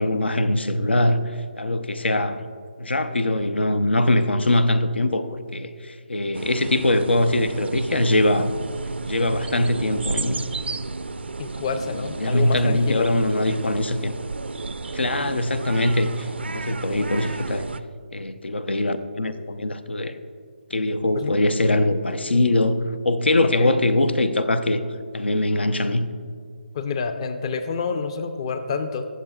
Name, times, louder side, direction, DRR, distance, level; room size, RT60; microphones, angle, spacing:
voice 1, 0.0-2.4 2.8-8.5 9.1-10.4 11.9-14.1 14.9-17.7 18.1-20.2 20.7-24.8 25.1-26.1, left 1 dB, 85° left, 11 dB, 0.7 m, -22 dB
sound 1, 6.3-17.8, right 3 dB, 85° right, 0.5 m, -32 dB
voice 2, 11.4-13.1 21.1-21.3 23.6-23.8 26.7-29.1, left 5 dB, 35° left, 9 dB, 0.5 m, -28 dB
21.0 x 7.3 x 2.4 m, 2.2 s
figure-of-eight pair, 155°, 6 cm